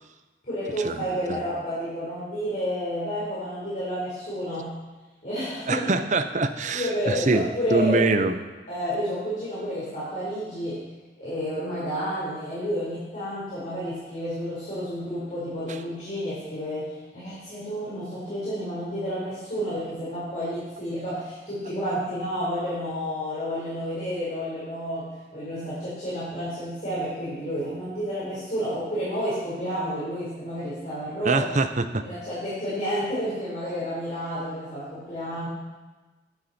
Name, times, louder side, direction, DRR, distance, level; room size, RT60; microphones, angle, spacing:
voice 1, 0.4-4.7 5.2-5.9 6.7-8.3 8.7-10.8 11.2-31.5 32.0-35.5, equal, 45° left, -11 dB, 4.3 m, -30 dB
voice 2, 5.7-8.3 31.2-32.1, right 3 dB, 45° right, 9 dB, 0.7 m, -24 dB
11.5 x 10.5 x 4.3 m, 1.2 s
head